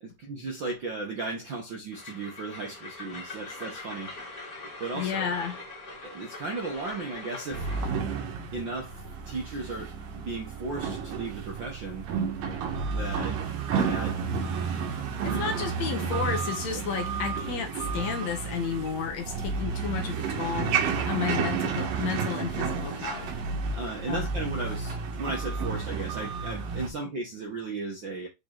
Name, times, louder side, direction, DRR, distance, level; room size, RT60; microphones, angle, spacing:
voice 1, 0.0-4.1 4.8-5.3 6.0-7.7 8.5-12.1 12.9-13.4 13.7-14.5 15.2-15.4 23.7-28.3, right 3 dB, 60° right, 1.3 m, -36 dB
Train, 1.9-8.0, left 2 dB, 30° left, 3.0 m, -42 dB
voice 2, 4.9-5.6 15.2-23.3 24.1-24.3, left 7 dB, 65° left, 2.1 m, -32 dB
sound 1, 7.5-26.9, right 5 dB, 90° right, 3.2 m, -31 dB
7.6 x 4.1 x 3.9 m
omnidirectional pair, 3.7 m